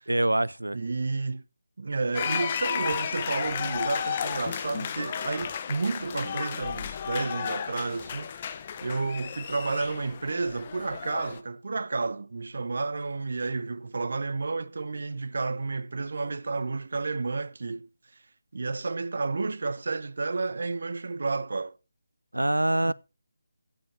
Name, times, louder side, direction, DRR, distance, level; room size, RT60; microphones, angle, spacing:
voice 1, 0.1-0.8 22.3-22.9, right 1 dB, 80° right, 0.5 m, -24 dB
voice 2, 0.7-1.4 1.8-8.5 8.8-17.9 18.5-21.8 22.8-22.9, right 3 dB, 55° right, 0.8 m, -31 dB
sound 1, 2.1-11.4, left 8 dB, 30° left, 0.9 m, -33 dB
16.0 x 7.3 x 2.7 m
figure-of-eight pair, 155°, 0 cm